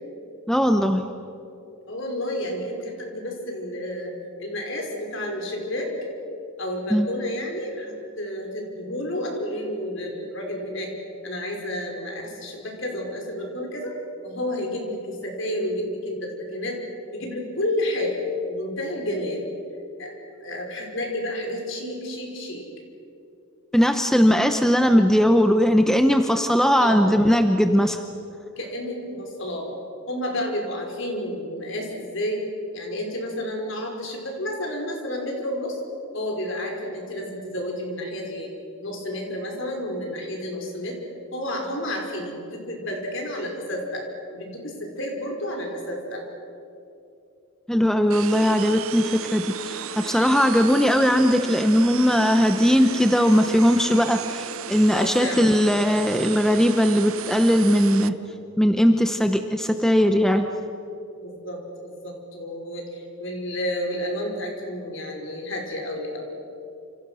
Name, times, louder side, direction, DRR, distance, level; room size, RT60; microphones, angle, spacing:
voice 1, 0.5-1.0 6.9-7.1 23.7-28.0 47.7-58.2 58.6-60.5, equal, ahead, 6 dB, 0.8 m, -19 dB
voice 2, 1.9-4.1 4.4-5.9 6.6-10.9 11.2-13.9 14.2-16.8 17.1-18.2 18.5-19.5 20.0-20.1 20.4-22.6 26.8-27.1 28.6-29.8 30.1-32.4 32.7-35.8 36.1-38.5 38.8-41.0 41.3-44.0 44.3-46.2 54.9-55.6 61.2-66.3, left 1 dB, 55° left, 1 dB, 5.4 m, -30 dB
sound 1, 48.1-58.1, right 8 dB, 70° right, 0.9 m, -34 dB
28.5 x 27.5 x 6.4 m, 2.7 s
head